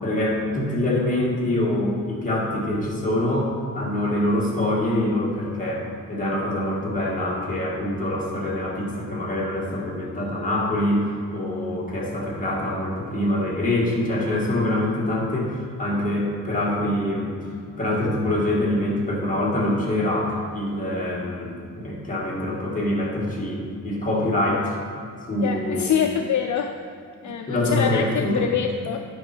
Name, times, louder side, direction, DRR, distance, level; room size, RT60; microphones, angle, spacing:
voice 1, 0.0-3.5 3.7-17.3 17.8-24.8 25.3-25.9 27.2-28.5, left 1 dB, 25° left, -5 dB, 2.1 m, -25 dB
voice 2, 25.4-26.7 27.2-29.0, left 8 dB, 60° left, 5 dB, 0.5 m, -25 dB
9.8 x 5.5 x 4.5 m, 2.4 s
wide cardioid pair, 135°, 33 cm